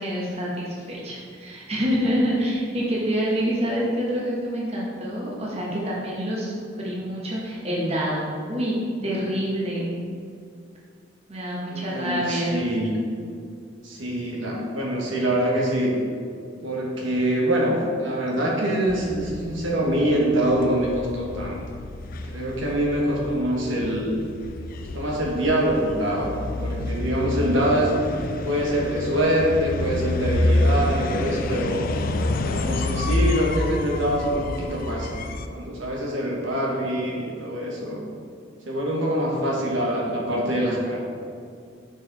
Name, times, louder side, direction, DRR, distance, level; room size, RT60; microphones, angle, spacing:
voice 1, 0.0-8.8 9.0-10.0 11.3-12.6, equal, 30° right, -4 dB, 1.2 m, -27 dB
voice 2, 11.7-12.9 13.8-16.0 16.6-21.6 22.3-24.1 24.9-26.3 26.6-27.9 28.4-31.8 32.4-38.0 38.7-41.2, right 1 dB, 80° right, -3 dB, 1.3 m, -24 dB
sound 1, 18.9-35.5, left 2 dB, 45° left, 0.3 m, -28 dB
6.3 x 4.9 x 4.0 m, 2.3 s
head